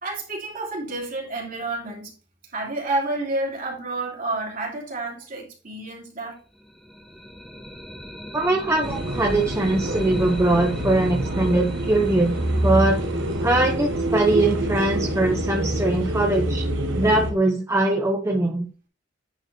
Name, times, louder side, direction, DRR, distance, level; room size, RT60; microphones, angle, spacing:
voice 1, 0.0-2.1 2.5-6.4, right 2 dB, 45° right, 2.9 m, -29 dB
sound 1, 6.5-16.3, equal, ahead, 1.2 m, -40 dB
voice 2, 8.3-12.4 12.6-13.0 13.4-16.6 17.0-18.7, right 2 dB, 15° right, 0.8 m, -21 dB
sound 2, 8.8-17.3, right 1 dB, 75° right, 1.2 m, -26 dB
10.0 x 4.4 x 3.3 m
head